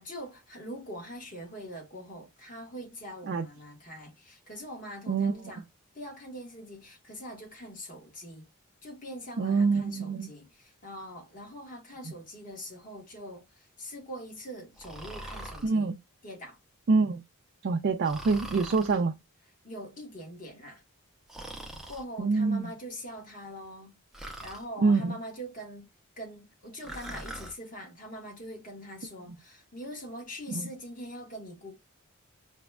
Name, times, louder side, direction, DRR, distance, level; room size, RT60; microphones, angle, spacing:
voice 1, 0.0-5.6 5.9-8.5 8.8-15.9 16.2-16.6 19.6-20.8 21.9-24.0 24.4-25.9 26.2-31.8, equal, 40° left, 1.4 m, -43 dB
voice 2, 5.1-5.4 9.4-10.3 15.6-15.9 16.9-17.2 17.6-19.2 22.2-22.7 24.8-25.2 29.3-29.4 30.5-30.7, right 4 dB, 50° right, 0.4 m, -26 dB
Breathing, 14.8-15.7 18.0-19.0 21.3-22.0 24.1-24.6 26.8-27.5, right 1 dB, ahead, 0.6 m, -42 dB
4.9 x 2.2 x 2.2 m
head